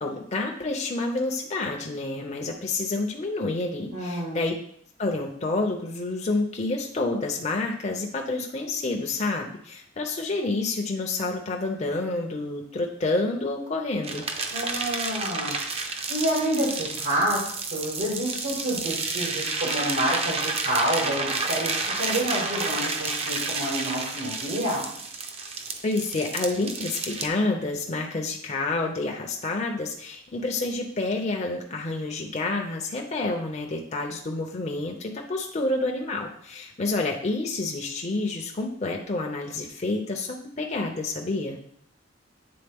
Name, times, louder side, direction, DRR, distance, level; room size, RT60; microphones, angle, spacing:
voice 1, 0.0-4.5 5.0-14.3 25.8-41.6, left 2 dB, 35° left, 1 dB, 0.6 m, -29 dB
voice 2, 3.9-4.4 14.5-15.6 16.1-17.4 17.7-24.9, right 1 dB, 85° right, -8 dB, 2.3 m, -28 dB
sound 1, 14.0-27.3, right 4 dB, 30° right, 0.6 m, -30 dB
8.6 x 3.6 x 3.5 m, 0.64 s
head